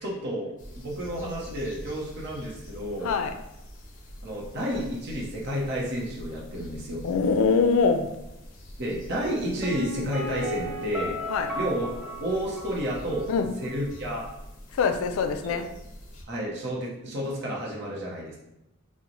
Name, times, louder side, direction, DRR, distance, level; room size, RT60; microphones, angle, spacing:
voice 1, 0.0-3.1 4.2-7.1 8.8-11.2 11.5-11.9 12.2-13.3 13.6-14.3 15.4-15.5 16.3-18.4, equal, 55° right, -4 dB, 0.7 m, -31 dB
sound 1, 0.6-16.2, equal, 40° left, 0.6 m, -45 dB
voice 2, 3.0-3.4 7.0-8.1 11.3-11.5 13.3-13.5 14.7-15.7, left 5 dB, 85° left, 7 dB, 0.3 m, -23 dB
Piano, 9.6-13.4 13.6-13.7, left 1 dB, 5° right, 0.4 m, -35 dB
2.9 x 2.0 x 3.9 m, 0.88 s
head